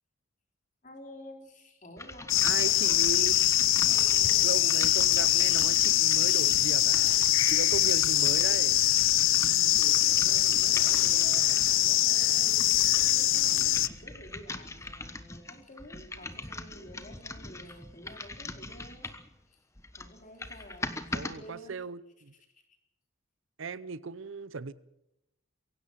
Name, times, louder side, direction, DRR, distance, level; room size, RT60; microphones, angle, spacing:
voice 1, 0.8-3.0 3.3-4.8 7.8-8.0 9.5-19.1 19.5-19.6 19.9-21.8, equal, 35° left, 4.1 m, -50 dB
sound 1, 2.0-11.8 12.4-19.3 19.8-21.3, left 2 dB, 15° left, 1.2 m, -42 dB
sound 2, 2.3-13.9, left 13 dB, 65° left, 0.7 m, -23 dB
voice 2, 2.4-3.4 4.4-8.8 21.1-22.3 23.6-24.7, right 4 dB, 65° right, 0.7 m, -37 dB
23.0 x 17.0 x 7.4 m
head